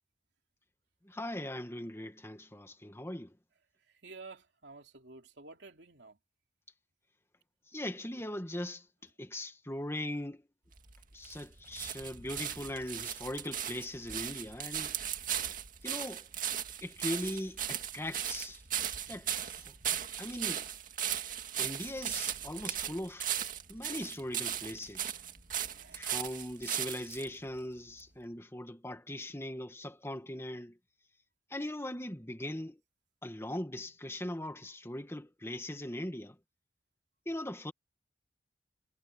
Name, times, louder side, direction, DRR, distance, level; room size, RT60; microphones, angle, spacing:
voice 1, 1.0-3.4 7.7-10.5 11.1-15.0 15.8-16.3 16.8-18.6 19.1-19.7 20.2-20.7 21.6-23.4 23.7-25.2 25.9-30.8 31.5-32.8 33.2-36.4 37.3-37.7, left 1 dB, 15° left, 1.9 m, -40 dB
voice 2, 3.9-6.2 17.1-17.2 25.6-26.1, right 3 dB, 75° right, 3.0 m, -51 dB
sound 1, 10.7-27.3 28.0-28.1, right 10 dB, 50° right, 2.1 m, -37 dB
head